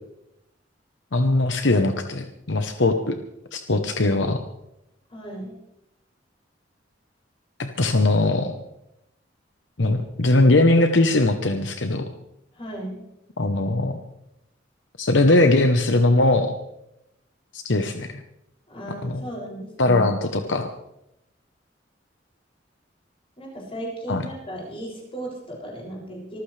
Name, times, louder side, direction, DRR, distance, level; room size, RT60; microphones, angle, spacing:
voice 1, 1.1-3.2 3.5-4.4 7.6-8.5 9.8-12.1 13.4-14.0 15.0-16.5 17.5-18.2 19.0-19.2 19.8-20.7 24.1-24.2, left 2 dB, 75° left, 6 dB, 1.0 m, -20 dB
voice 2, 5.1-5.6 12.5-13.0 18.7-20.0 23.4-26.4, right 1 dB, 30° left, -3 dB, 6.7 m, -35 dB
25.0 x 14.5 x 3.4 m, 0.84 s
head